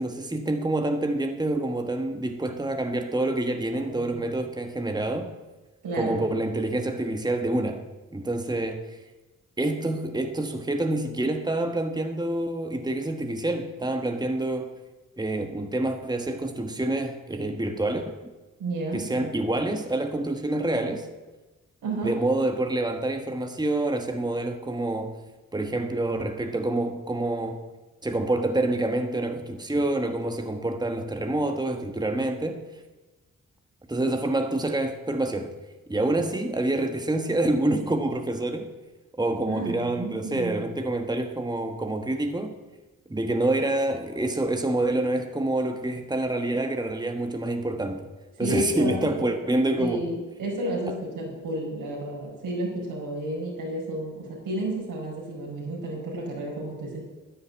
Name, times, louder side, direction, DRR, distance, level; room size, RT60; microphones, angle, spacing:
voice 1, 0.0-5.3 5.9-7.8 8.1-8.9 9.6-14.7 15.2-18.1 18.9-21.1 22.0-25.2 25.5-27.6 28.0-32.6 33.9-35.5 35.9-38.7 39.2-42.6 43.1-48.1 48.4-50.0, right 2 dB, 10° right, 5 dB, 1.4 m, -27 dB
voice 2, 3.7-4.2 5.8-6.2 18.6-19.3 21.8-22.2 39.5-40.7 48.4-49.1 49.8-57.1, right 1 dB, 90° right, -2 dB, 4.9 m, -31 dB
10.5 x 9.9 x 8.3 m, 1.2 s
cardioid pair, 55°, 33 cm